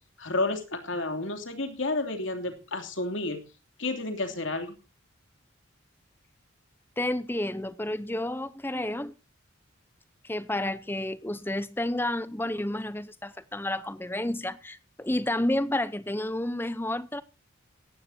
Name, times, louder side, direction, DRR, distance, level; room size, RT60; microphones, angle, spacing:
voice 1, 0.2-3.4 3.8-4.8, left 2 dB, 65° left, 3.0 m, -31 dB
voice 2, 7.0-9.1 10.2-17.2, left 1 dB, 10° left, 0.7 m, -30 dB
17.5 x 15.0 x 2.8 m
head